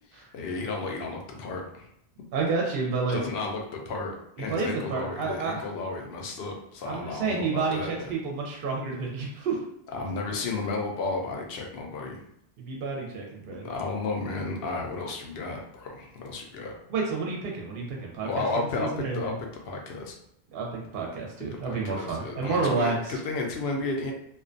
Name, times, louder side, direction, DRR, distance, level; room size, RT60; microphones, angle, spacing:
voice 1, 0.1-1.9 3.1-8.1 9.9-12.2 13.6-16.7 18.2-20.1 21.6-24.1, left 3 dB, 70° left, 1 dB, 0.7 m, -33 dB
voice 2, 2.3-3.2 4.5-5.5 6.9-9.6 12.6-13.7 16.9-18.4 18.8-19.3 20.5-23.2, right 4 dB, 65° right, 0 dB, 0.7 m, -30 dB
2.4 x 2.1 x 2.5 m, 0.72 s
omnidirectional pair, 1.1 m